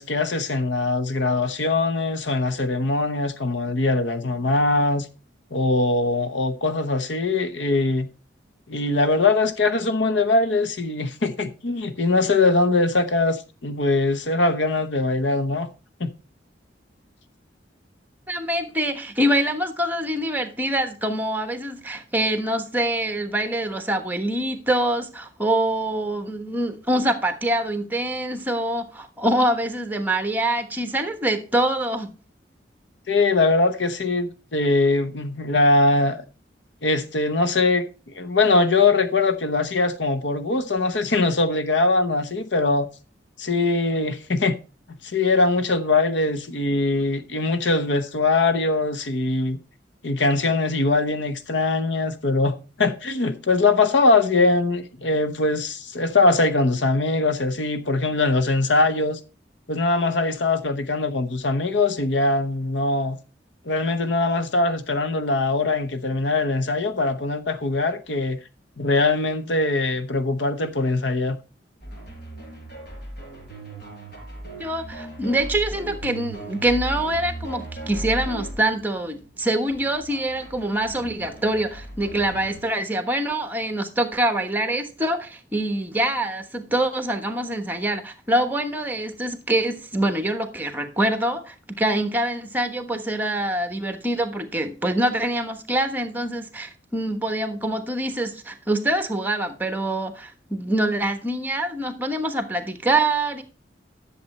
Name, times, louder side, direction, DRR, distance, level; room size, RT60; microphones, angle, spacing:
voice 1, 0.0-5.1 5.5-8.1 8.7-15.7 16.0-16.1 33.1-36.2 36.8-37.9 38.1-42.9 43.4-44.6 44.9-49.6 50.0-59.2 59.7-63.2 63.7-68.4 68.8-71.4, left 3 dB, 80° left, 0.9 m, -22 dB
voice 2, 18.3-32.1 74.6-103.4, right 1 dB, 10° right, 1.2 m, -25 dB
sound 1, 71.8-82.6, right 1 dB, 55° left, 5.0 m, -37 dB
10.5 x 7.1 x 4.2 m
head